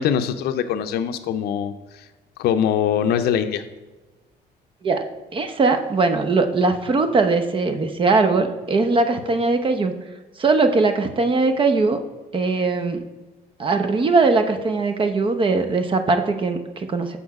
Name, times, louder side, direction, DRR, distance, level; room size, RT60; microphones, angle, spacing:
voice 1, 0.0-1.7 2.4-3.6, left 8 dB, 70° left, 8 dB, 0.5 m, -22 dB
voice 2, 5.3-9.9 10.4-12.0 12.3-13.0 13.6-17.2, right 3 dB, 30° right, 8 dB, 0.7 m, -20 dB
6.3 x 5.6 x 4.7 m, 1.2 s
cardioid pair, 110°, 17 cm